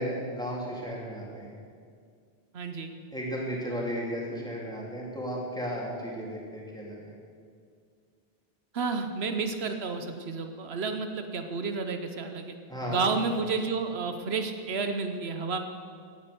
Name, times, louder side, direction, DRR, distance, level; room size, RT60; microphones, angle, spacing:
voice 1, 0.0-1.5 3.1-7.1 12.7-13.1, equal, 5° left, -4 dB, 3.3 m, -34 dB
voice 2, 2.5-2.9 8.7-12.6 12.9-15.6, right 4 dB, 80° right, 7 dB, 1.2 m, -31 dB
16.5 x 9.8 x 6.9 m, 2.2 s
omnidirectional pair, 1.1 m